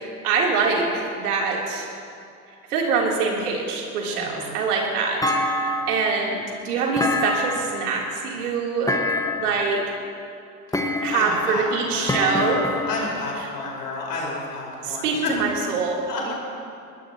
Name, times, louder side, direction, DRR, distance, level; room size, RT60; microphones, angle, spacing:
voice 1, 0.0-1.9 2.7-9.0 9.4-9.8 11.0-12.6 14.8-16.0 16.2-16.3, right 4 dB, 75° right, -2 dB, 3.4 m, -24 dB
voice 2, 4.1-4.5 10.7-12.6 12.8-15.3 16.1-16.3, left 3 dB, 85° left, -4 dB, 4.8 m, -31 dB
Thump thud, 5.2-6.1 7.0-7.9 8.9-9.6 10.7-11.4 12.1-13.1, left 2 dB, 5° left, 1.4 m, -25 dB
22.5 x 20.0 x 3.0 m, 2.5 s
hypercardioid pair, 75°, 46 cm